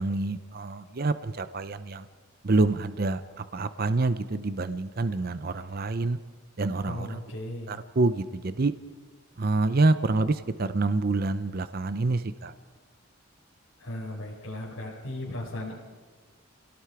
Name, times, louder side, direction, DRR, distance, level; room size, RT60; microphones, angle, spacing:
voice 1, 0.0-2.1 2.4-6.2 6.6-7.2 7.7-8.7 9.4-12.5, right 3 dB, 45° right, 12 dB, 0.6 m, -27 dB
voice 2, 6.8-7.7 13.8-15.7, left 1 dB, 85° left, -6 dB, 4.6 m, -36 dB
30.0 x 17.5 x 4.9 m, 1.4 s
head